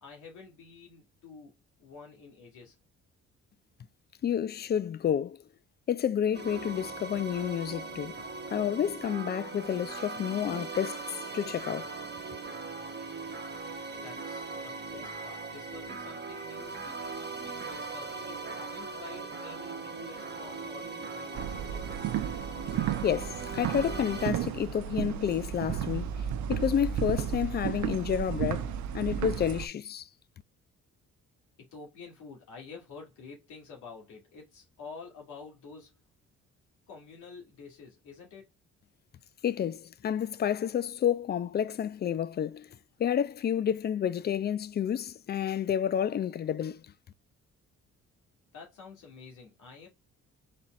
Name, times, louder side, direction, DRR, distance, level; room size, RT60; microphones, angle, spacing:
voice 1, 0.0-2.8 14.0-22.0 31.6-35.9 36.9-38.5 48.5-49.9, left 5 dB, 80° left, 2.5 m, -49 dB
voice 2, 4.2-5.4 5.9-8.2 8.5-11.0 11.3-11.9 23.0-30.1 39.4-42.7 43.0-46.9, left 9 dB, 35° left, 0.4 m, -30 dB
sound 1, 6.3-24.3, right 3 dB, 35° right, 1.0 m, -39 dB
sound 2, 21.3-29.7, right 10 dB, 70° right, 0.6 m, -33 dB
4.2 x 4.2 x 2.4 m
cardioid pair, 90°, 30 cm